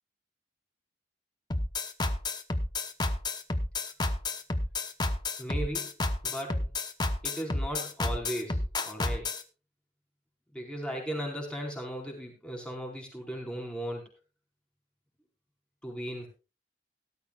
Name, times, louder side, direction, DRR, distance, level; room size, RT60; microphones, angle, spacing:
sound 1, 1.5-9.4, left 2 dB, 25° left, 1.0 m, -30 dB
voice 1, 5.4-5.9 6.2-6.7 7.2-9.3 10.5-14.1 15.8-16.3, equal, 5° left, -1 dB, 4.7 m, -37 dB
17.0 x 13.5 x 2.4 m, 0.31 s
head